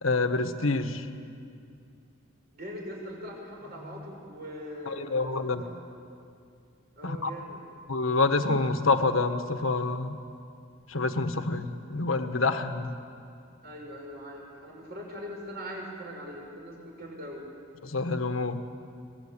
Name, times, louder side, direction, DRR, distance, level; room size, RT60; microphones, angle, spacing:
voice 1, 0.0-1.0 4.9-5.6 7.0-7.3 7.9-10.2 10.9-12.9 17.8-18.6, left 3 dB, 75° left, 8 dB, 1.4 m, -27 dB
voice 2, 2.5-5.7 7.0-7.6 13.6-17.4, equal, 50° right, -1 dB, 6.1 m, -41 dB
25.0 x 20.0 x 8.7 m, 2.4 s
head